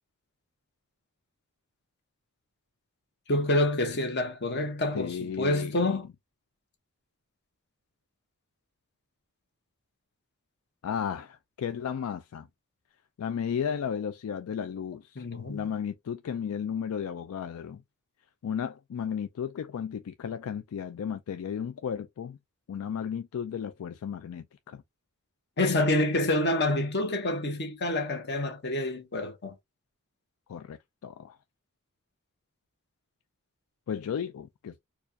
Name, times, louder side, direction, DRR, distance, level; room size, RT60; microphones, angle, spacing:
voice 1, 3.3-6.1 15.2-15.6 25.6-29.5, left 1 dB, 50° left, 1.0 m, -27 dB
voice 2, 4.9-6.0 10.8-12.5 13.2-15.2 15.5-17.8 18.4-22.4 22.7-24.8 30.5-31.4 33.9-34.8, left 7 dB, 75° left, 0.3 m, -34 dB
4.4 x 2.4 x 2.6 m
head